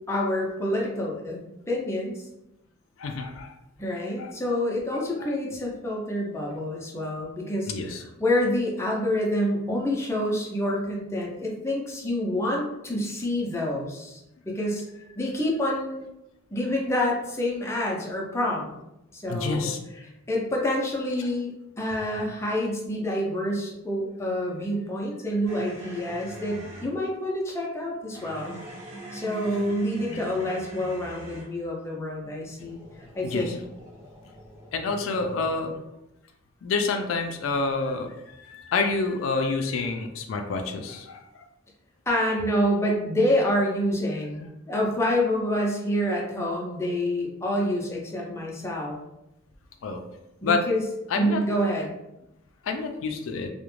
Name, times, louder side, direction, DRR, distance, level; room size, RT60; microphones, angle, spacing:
voice 1, 0.1-1.4 1.7-2.3 3.8-7.7 8.2-14.2 14.5-14.8 15.2-16.0 16.5-18.7 19.1-19.7 20.3-28.6 29.1-32.8 33.2-33.6 42.1-49.0 50.4-50.8 51.2-51.9, left 1 dB, 15° left, -2 dB, 0.4 m, -27 dB
voice 2, 3.0-3.5 4.2-4.3 4.9-5.3 7.7-8.0 19.3-19.8 33.2-33.5 34.7-35.7 36.6-41.5 49.8-50.0 50.4-50.6 51.1-51.4 52.6-53.5, left 4 dB, 85° left, 5 dB, 0.4 m, -28 dB
sound 1, 25.5-27.0 28.1-31.6 32.5-35.5, right 1 dB, 35° right, 0.6 m, -42 dB
2.4 x 2.1 x 3.0 m, 0.88 s
head